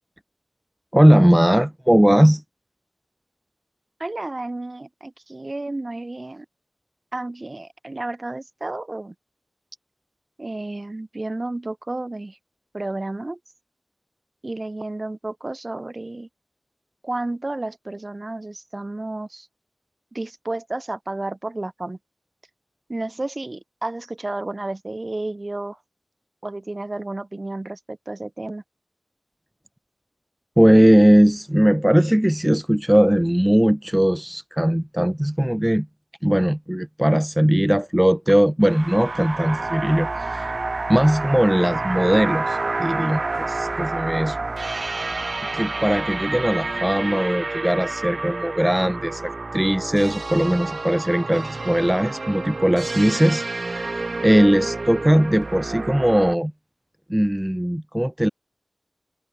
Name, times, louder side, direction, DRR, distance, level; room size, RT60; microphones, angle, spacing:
voice 1, 0.9-2.4 30.6-35.9 36.2-40.6 40.9-44.4 45.5-53.9 54.2-56.5 57.1-58.3, equal, 10° right, 0.9 m, -19 dB
voice 2, 4.0-6.4 7.1-9.1 10.4-12.4 12.7-13.4 14.4-16.3 17.0-19.5 20.1-22.0 22.9-25.8 26.4-28.6, right 2 dB, 40° right, 8.0 m, -31 dB
sound 1, 38.6-56.4, right 3 dB, 65° right, 0.8 m, -29 dB
sound 2, 38.8-47.4, left 1 dB, 30° left, 8.0 m, -46 dB
wide cardioid pair, 65°, 0 cm